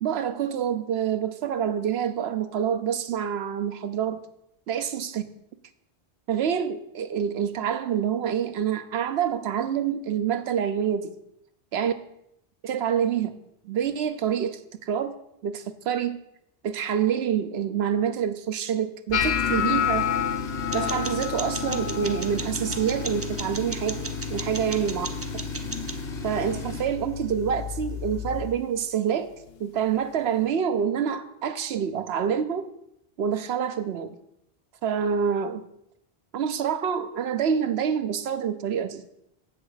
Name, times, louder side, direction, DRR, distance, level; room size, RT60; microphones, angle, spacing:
voice 1, 0.0-4.2 4.7-5.2 6.3-11.1 11.7-11.9 12.6-13.3 13.6-15.1 15.4-16.2 16.6-20.1 20.7-24.0 24.3-25.1 26.2-29.3 29.6-32.7 33.2-34.1 34.8-35.6 36.3-39.2, right 8 dB, 80° right, 10 dB, 0.9 m, -27 dB
sound 1, 19.1-25.2 25.5-26.0 26.4-26.9 27.5-27.7 29.5-29.6, left 9 dB, 75° left, 0.8 m, -30 dB
Tools, 19.1-28.6, left 4 dB, 45° left, 1.0 m, -34 dB
sound 2, 20.7-26.0, right 3 dB, 20° right, 0.4 m, -37 dB
8.0 x 6.3 x 4.9 m, 0.78 s
omnidirectional pair, 1.1 m